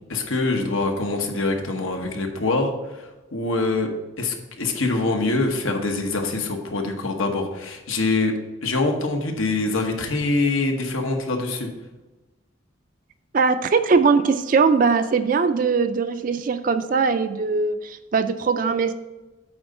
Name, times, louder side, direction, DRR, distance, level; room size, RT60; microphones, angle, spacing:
voice 1, 0.1-8.3 8.6-11.7, left 3 dB, 90° left, 3 dB, 1.1 m, -24 dB
voice 2, 13.3-18.9, right 5 dB, 40° right, 9 dB, 0.3 m, -20 dB
8.7 x 3.9 x 5.4 m, 1.1 s
head